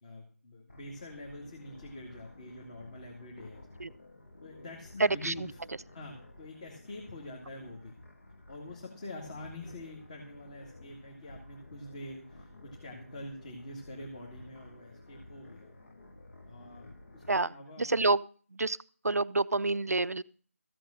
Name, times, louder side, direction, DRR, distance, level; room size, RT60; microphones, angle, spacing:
voice 1, 0.0-3.7 4.4-5.6 5.9-8.0 8.5-15.7 16.4-17.9, left 1 dB, 30° left, 0 dB, 2.2 m, -46 dB
sound 1, 0.7-17.4, left 2 dB, 60° left, 2.4 m, -53 dB
voice 2, 5.0-5.3 17.3-18.2 18.5-18.8 19.0-20.2, right 3 dB, 85° right, 15 dB, 0.5 m, -28 dB
14.5 x 7.7 x 6.4 m, 0.43 s
figure-of-eight pair, 165°, 8 cm